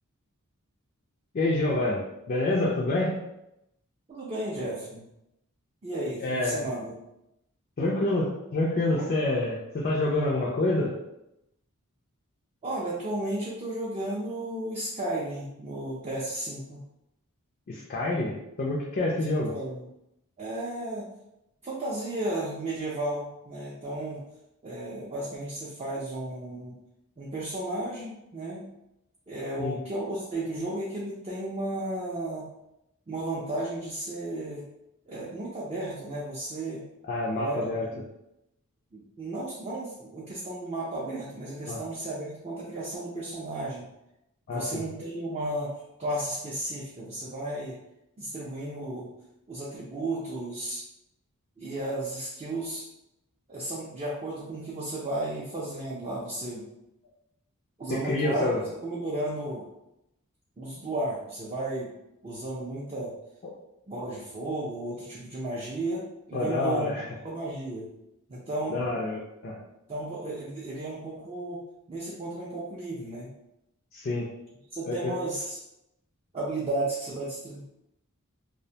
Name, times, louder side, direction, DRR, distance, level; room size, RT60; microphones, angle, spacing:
voice 1, 1.3-3.2 6.2-6.7 7.8-10.9 17.7-19.6 29.6-29.8 37.1-37.9 41.6-41.8 44.5-44.7 57.9-58.6 63.4-63.5 66.3-67.0 68.7-69.6 73.9-74.3 74.9-75.1, left 2 dB, 40° left, -4 dB, 0.4 m, -27 dB
voice 2, 4.1-5.1 5.8-7.0 12.6-16.8 19.5-19.9 20.4-21.1 21.6-24.2 24.6-26.8 27.2-28.6 29.3-32.5 33.1-34.6 35.1-36.8 37.4-37.6 37.9-38.0 38.9-43.9 44.5-45.7 46.0-47.8 48.2-49.1 49.5-50.8 51.6-52.8 53.5-56.7 57.8-58.5 58.8-59.6 60.6-61.9 62.2-63.1 63.9-66.0 66.3-67.9 68.3-68.8 69.9-71.6 71.9-73.3 74.7-75.6 76.3-77.6, right 1 dB, 25° right, -6 dB, 0.4 m, -34 dB
2.4 x 2.1 x 2.7 m, 0.86 s
head